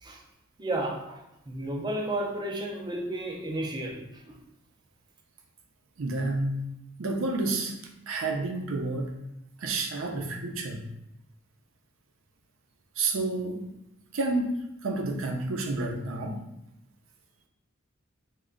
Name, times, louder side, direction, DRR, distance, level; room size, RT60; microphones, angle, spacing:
voice 1, 0.6-4.4, right 1 dB, 20° right, 1 dB, 0.4 m, -33 dB
voice 2, 6.0-6.6 7.0-7.8 8.1-9.2 9.6-10.9 13.0-13.7 14.1-14.5 14.8-16.4, right 2 dB, 75° right, 3 dB, 0.5 m, -30 dB
3.1 x 2.1 x 3.7 m, 0.84 s
head